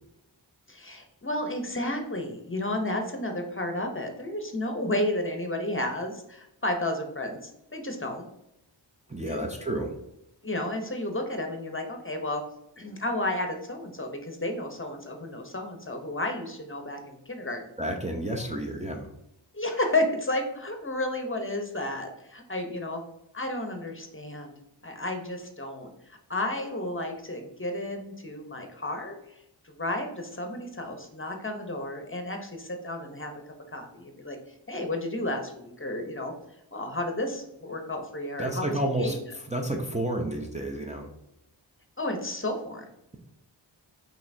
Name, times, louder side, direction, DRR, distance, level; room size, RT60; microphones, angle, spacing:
voice 1, 0.7-8.2 9.2-9.5 10.4-12.4 12.8-17.6 19.5-23.0 23.3-24.5 24.8-29.2 29.6-33.3 33.7-36.3 36.7-39.1 42.0-42.9, left 1 dB, 25° left, 4 dB, 0.7 m, -32 dB
voice 2, 9.1-9.9 17.8-19.1 38.4-39.2 39.5-41.1, right 1 dB, 15° right, 0 dB, 0.6 m, -30 dB
5.5 x 2.9 x 2.6 m, 0.83 s
wide cardioid pair, 45°, 46 cm